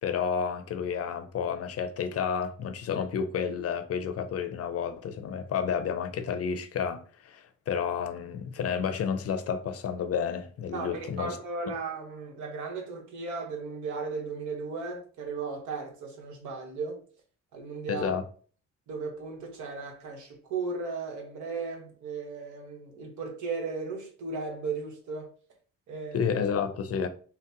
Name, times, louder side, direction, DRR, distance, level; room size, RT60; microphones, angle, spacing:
voice 1, 0.0-11.4 17.9-18.2 26.1-27.1, left 7 dB, 50° left, 0.5 m, -31 dB
voice 2, 10.7-17.1 17.5-18.2 18.9-25.3 25.9-26.4, right 4 dB, 75° right, 1.0 m, -36 dB
3.8 x 2.0 x 2.6 m
cardioid pair, 90°, 30 cm